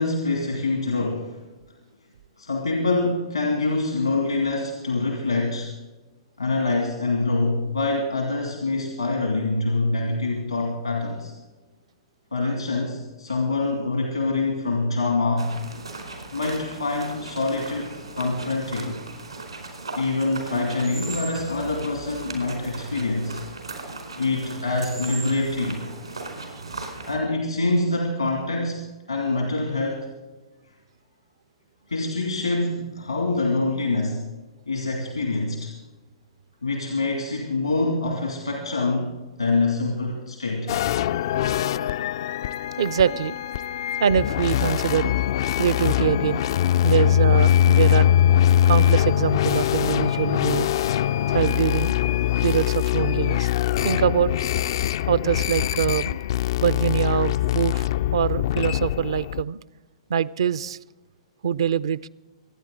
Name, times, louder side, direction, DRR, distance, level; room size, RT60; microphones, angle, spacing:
voice 1, 0.0-1.4 2.4-5.7 6.4-11.3 12.3-15.6 16.3-19.0 19.9-23.4 24.2-25.8 27.1-30.1 31.9-34.2 34.7-35.7 36.6-40.7, left 3 dB, 90° left, 2.6 m, -25 dB
sound 1, 15.4-27.2, right 3 dB, 90° right, 4.3 m, -37 dB
sound 2, 40.7-59.4, left 11 dB, 55° left, 0.3 m, -22 dB
voice 2, 42.8-43.4 44.0-45.3 45.6-46.5 46.8-48.1 48.6-50.8 51.3-52.0 52.4-53.5 53.8-54.3 55.1-56.2 56.6-59.6 60.1-60.8 61.4-62.1, right 8 dB, 65° right, 0.5 m, -24 dB
25.0 x 9.7 x 3.9 m
figure-of-eight pair, 115°, 3 cm